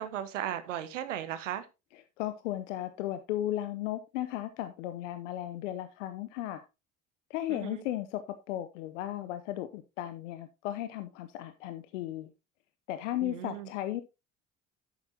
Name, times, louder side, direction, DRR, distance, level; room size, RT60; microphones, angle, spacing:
voice 1, 0.0-1.7 7.5-7.8 13.2-13.7, right 11 dB, 90° right, 1.1 m, -36 dB
voice 2, 1.9-6.6 7.3-8.2 8.5-12.3 12.9-14.0, left 13 dB, 80° left, 0.8 m, -35 dB
11.0 x 8.2 x 2.8 m
hypercardioid pair, 65°, 36 cm